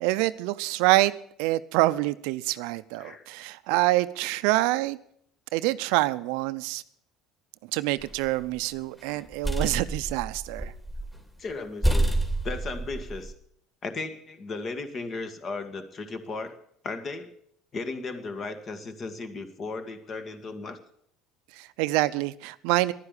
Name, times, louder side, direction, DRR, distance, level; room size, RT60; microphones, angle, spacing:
voice 1, 0.0-1.1 1.4-5.0 5.5-6.8 7.7-10.7 21.5-22.9, right 18 dB, 75° right, 0.5 m, -26 dB
sound 1, 8.0-8.6 9.1-11.2 11.5-11.6 11.8-13.3, right 1 dB, 10° left, 2.6 m, -28 dB
voice 2, 11.4-12.1 12.4-13.3 13.8-16.5 16.8-17.3 17.7-20.8, left 3 dB, 40° left, 1.9 m, -35 dB
11.0 x 9.8 x 8.3 m
hypercardioid pair, 75°, 0 cm